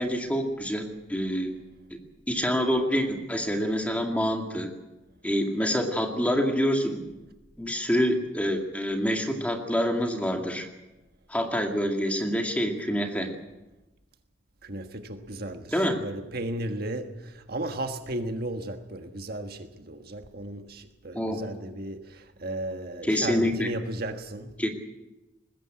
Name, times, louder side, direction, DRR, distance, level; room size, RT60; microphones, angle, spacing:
voice 1, 0.0-1.5 1.9-2.0 2.3-4.7 5.2-7.2 7.6-10.7 11.3-13.3 15.7-16.0 21.1-21.4 23.1-23.7 24.6-24.7, equal, 5° left, 3 dB, 2.2 m, -26 dB
voice 2, 14.6-24.5, right 1 dB, 55° right, 6 dB, 1.5 m, -35 dB
20.5 x 15.5 x 8.8 m, 1.0 s
head